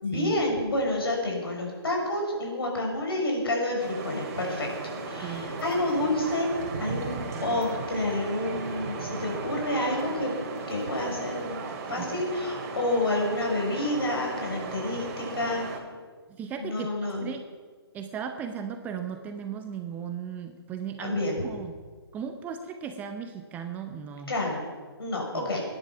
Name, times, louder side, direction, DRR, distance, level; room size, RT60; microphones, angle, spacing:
voice 1, 0.0-4.7 5.1-6.5 6.8-15.7 16.6-17.3 21.0-21.3 24.3-24.6 25.0-25.6, left 1 dB, 65° left, 0 dB, 6.3 m, -29 dB
sound 1, 3.8-15.8, right 4 dB, 40° right, 2.8 m, -36 dB
voice 2, 16.4-17.4 17.9-21.7 22.1-24.3 25.3-25.5, right 7 dB, 10° right, 7 dB, 0.7 m, -37 dB
20.5 x 10.5 x 6.0 m, 1.5 s
figure-of-eight pair, 140°, 14 cm